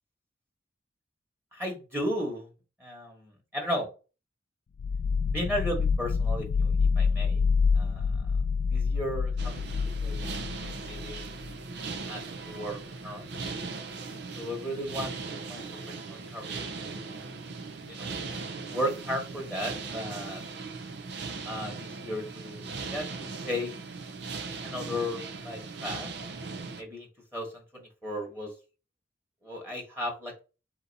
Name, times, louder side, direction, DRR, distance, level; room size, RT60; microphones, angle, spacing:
voice 1, 1.5-2.5 2.8-3.9 5.3-7.4 7.7-8.1 8.7-10.3 10.8-11.3 12.1-12.8 13.0-13.3 14.4-17.3 17.9-18.1 18.7-20.4 21.4-23.1 23.4-23.7 24.6-26.1 26.8-28.5 29.4-30.4, equal, 10° right, -1 dB, 1.4 m, -35 dB
sound 1, 4.8-11.5, left 5 dB, 55° left, 0.3 m, -27 dB
sound 2, 9.4-26.8, right 4 dB, 65° right, 0.6 m, -39 dB
3.9 x 2.9 x 4.0 m, 0.31 s
head